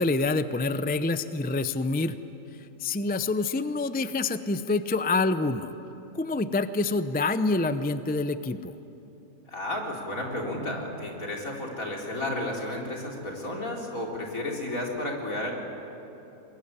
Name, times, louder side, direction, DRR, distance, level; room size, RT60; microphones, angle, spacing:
voice 1, 0.0-2.2 2.8-5.7 6.1-8.7, left 3 dB, 15° left, 11 dB, 0.3 m, -27 dB
voice 2, 9.5-15.5, left 1 dB, 65° left, -1 dB, 4.1 m, -32 dB
23.5 x 21.5 x 9.9 m, 3.0 s
omnidirectional pair, 1.5 m